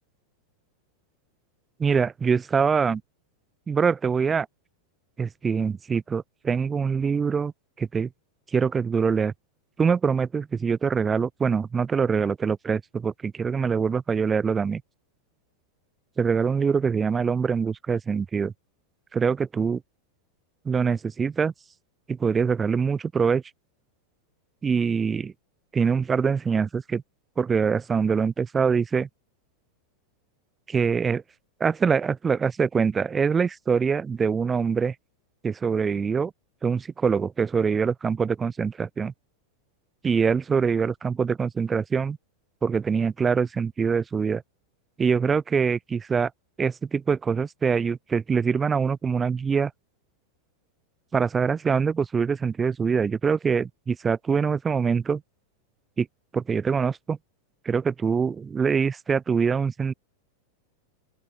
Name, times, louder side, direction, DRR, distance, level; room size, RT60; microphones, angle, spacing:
voice 1, 1.8-3.0 3.7-4.5 5.2-7.5 7.8-8.1 8.5-9.3 9.8-14.8 16.2-18.5 19.1-19.8 20.6-21.5 22.1-23.4 24.6-25.3 25.7-27.0 27.4-29.1 30.7-31.2 31.6-34.9 35.4-36.3 36.6-39.1 40.0-42.2 42.6-44.4 45.0-46.3 46.6-49.7 51.1-55.2 56.0-56.1 56.3-57.2 57.6-59.9, right 6 dB, 15° right, 1.5 m, -24 dB
open air
figure-of-eight pair, 90°, 0 cm